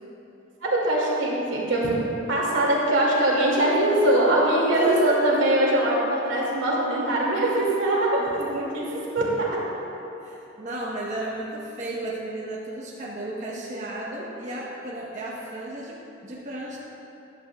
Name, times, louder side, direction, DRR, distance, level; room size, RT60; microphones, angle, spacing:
voice 1, 0.6-2.0 2.3-9.6, right 1 dB, 85° right, -4 dB, 2.4 m, -22 dB
voice 2, 4.7-5.2 8.2-8.5 10.2-16.8, right 1 dB, 40° right, -5 dB, 1.2 m, -34 dB
14.0 x 11.5 x 2.4 m, 2.9 s
head